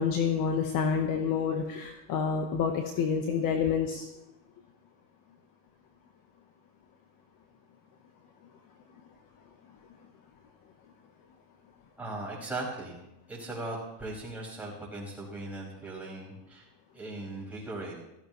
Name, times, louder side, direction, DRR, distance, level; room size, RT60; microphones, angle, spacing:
voice 1, 0.0-4.1, left 6 dB, 45° left, 4 dB, 1.2 m, -28 dB
voice 2, 12.0-13.0 13.3-16.7 16.9-18.0, right 2 dB, 5° right, -5 dB, 5.6 m, -38 dB
17.0 x 14.5 x 3.1 m, 0.91 s
cardioid pair, 145°, 49 cm